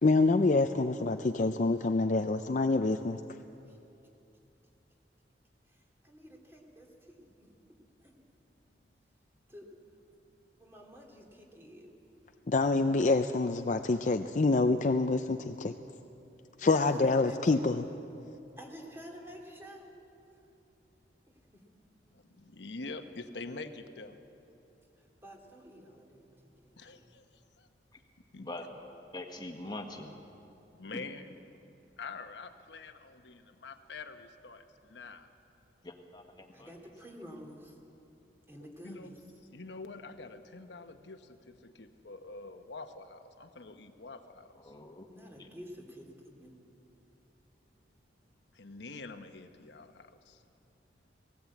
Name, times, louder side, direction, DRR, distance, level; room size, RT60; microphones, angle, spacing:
voice 1, 0.0-3.2 12.5-15.7 16.6-17.8, left 3 dB, 45° left, 7 dB, 0.5 m, -26 dB
voice 2, 5.7-7.3 8.0-8.1 9.5-9.7 10.6-11.9 16.6-17.7 18.6-19.9 21.3-21.6 25.0-26.3 26.6-27.0 36.5-37.8 38.5-39.2 45.1-46.1 46.4-46.5, equal, 15° right, 0 dB, 2.7 m, -50 dB
voice 3, 22.1-24.2 26.8-27.7 28.3-28.5 30.7-31.3 32.0-35.3 38.8-39.1 39.5-44.7 48.5-50.4, left 3 dB, 85° left, 7 dB, 1.0 m, -46 dB
voice 4, 28.4-28.8 29.1-30.2 30.9-31.0 35.8-36.7 44.6-45.1 45.4-45.5, left 2 dB, 25° left, 3 dB, 1.6 m, -43 dB
18.5 x 17.0 x 8.4 m, 2.8 s
head